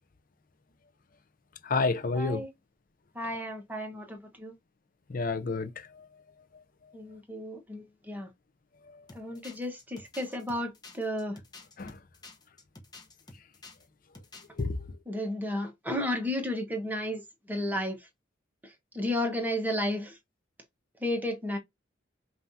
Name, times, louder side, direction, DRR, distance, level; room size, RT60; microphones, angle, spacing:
voice 1, 1.6-2.4 5.1-6.0 8.9-9.0 11.8-12.0 14.6-15.0, left 3 dB, 45° left, 0.6 m, -30 dB
voice 2, 2.1-2.5 3.1-4.5 6.9-8.3 9.1-11.4 15.1-18.1 18.6-20.2 21.0-21.6, left 1 dB, 10° right, 1.2 m, -33 dB
sound 1, 9.1-13.9 14.1-14.6, left 3 dB, 20° left, 1.0 m, -50 dB
5.5 x 2.7 x 2.7 m
head